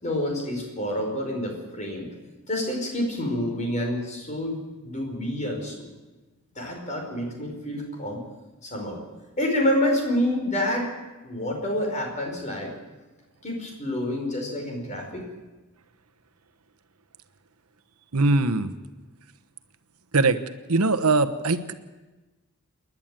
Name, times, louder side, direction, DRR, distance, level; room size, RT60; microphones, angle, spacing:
voice 1, 0.0-2.1 2.5-5.9 6.6-8.2 8.6-9.0 9.4-10.9 11.2-12.7 13.4-15.3, left 1 dB, 35° left, 2 dB, 5.2 m, -28 dB
voice 2, 18.1-18.7 20.1-20.4 20.7-21.7, right 3 dB, 80° right, 10 dB, 1.1 m, -21 dB
28.5 x 11.0 x 9.0 m, 1.2 s
head